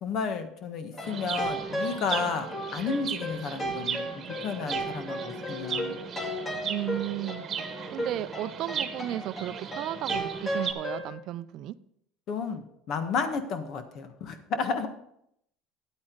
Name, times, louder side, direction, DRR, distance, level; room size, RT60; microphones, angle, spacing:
voice 1, 0.0-6.0 12.3-14.9, left 5 dB, 55° left, 8 dB, 1.4 m, -32 dB
sound 1, 0.9-11.1, equal, 30° left, 3.9 m, -35 dB
Chirp tweet, 1.0-10.7, right 7 dB, 40° right, 1.2 m, -37 dB
voice 2, 6.7-7.4 7.9-11.7, right 14 dB, 60° right, 15 dB, 0.5 m, -34 dB
10.5 x 8.7 x 3.9 m, 0.73 s
supercardioid pair, 90°, 0 cm